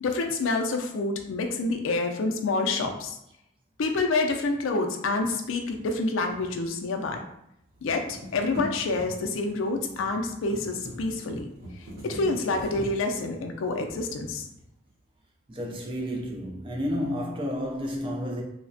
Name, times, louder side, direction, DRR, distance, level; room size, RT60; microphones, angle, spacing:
voice 1, 0.0-3.2 3.8-7.2 7.8-11.5 12.0-14.5, left 3 dB, 85° left, 0.4 m, -27 dB
sound 1, 5.1-7.3 7.6-14.9, equal, 50° right, 0.8 m, -43 dB
voice 2, 15.5-18.4, equal, 25° right, 0.4 m, -31 dB
3.2 x 2.1 x 2.6 m
head